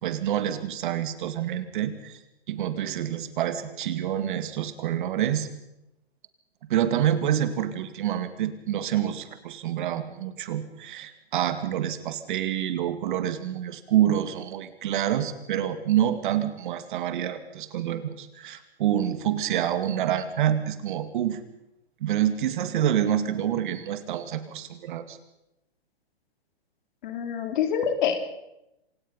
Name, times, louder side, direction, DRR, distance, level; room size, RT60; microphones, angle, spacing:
voice 1, 0.0-2.2 2.5-5.5 6.7-21.4 22.0-25.2, right 11 dB, 50° right, 11 dB, 2.2 m, -27 dB
voice 2, 27.0-28.2, left 8 dB, 50° left, 7 dB, 3.6 m, -26 dB
26.5 x 18.5 x 5.5 m, 0.91 s
hypercardioid pair, 135°, 32 cm